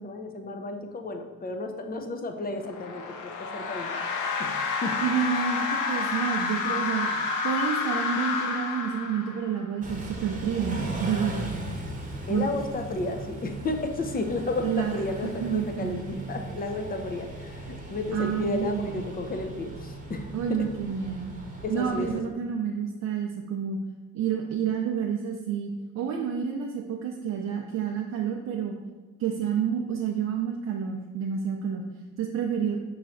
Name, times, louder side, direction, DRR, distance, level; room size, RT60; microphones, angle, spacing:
voice 1, 0.0-4.6 4.8-5.2 12.3-20.6 21.6-22.4, left 2 dB, 30° left, 5 dB, 0.5 m, -33 dB
sound 1, 2.6-9.6, left 4 dB, 80° left, 0.5 m, -29 dB
voice 2, 5.0-11.5 12.3-12.4 14.6-15.1 15.4-16.1 18.1-19.0 20.3-21.3 21.7-23.8 24.1-28.7 29.2-31.9 32.2-32.8, right 7 dB, 60° right, 1 dB, 0.5 m, -29 dB
Car / Idling / Accelerating revving vroom, 9.8-22.1, right 1 dB, 25° right, 0.9 m, -38 dB
5.6 x 3.1 x 2.5 m, 1.3 s
cardioid pair, 90°, 30 cm